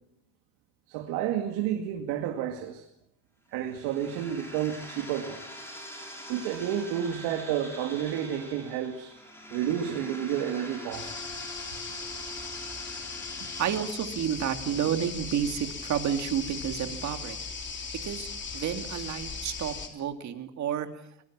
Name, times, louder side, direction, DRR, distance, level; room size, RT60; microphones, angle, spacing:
voice 1, 0.9-2.9 3.5-5.4 6.3-9.1 9.5-11.2, right 10 dB, 85° right, 4 dB, 2.3 m, -30 dB
sound 1, 3.5-13.8, equal, 5° left, 6.1 m, -44 dB
sound 2, 10.9-19.9, left 5 dB, 30° left, 3.5 m, -38 dB
voice 2, 13.6-17.4 18.0-18.3 18.5-20.9, right 9 dB, 50° right, 7 dB, 2.5 m, -30 dB
25.0 x 19.0 x 7.5 m, 0.75 s
cardioid pair, 120°, 36 cm